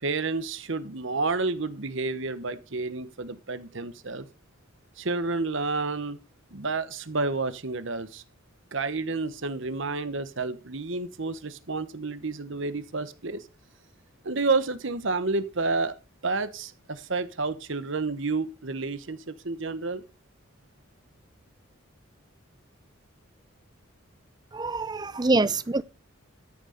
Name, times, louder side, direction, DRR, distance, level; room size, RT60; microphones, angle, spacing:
voice 1, 0.0-4.3 5.0-6.2 6.5-8.2 8.7-13.4 14.2-16.0 16.2-20.0 25.2-25.5, right 3 dB, 60° right, 1.1 m, -30 dB
voice 2, 24.5-25.8, right 2 dB, 20° right, 0.5 m, -25 dB
13.5 x 6.6 x 5.1 m
head